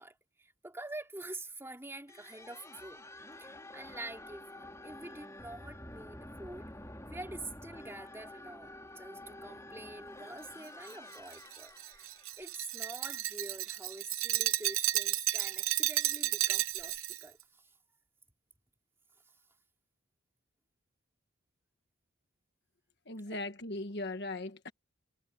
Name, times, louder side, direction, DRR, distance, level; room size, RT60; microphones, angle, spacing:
voice 1, 0.0-3.0 3.4-6.7 7.1-17.7 23.2-23.4, right 2 dB, 10° right, 3.1 m, -47 dB
sound 1, 2.1-13.3, left 1 dB, 15° left, 4.4 m, -49 dB
Glass, 10.9-17.2, right 15 dB, 75° right, 0.8 m, -32 dB
voice 2, 23.1-24.7, left 2 dB, 50° left, 1.4 m, -38 dB
head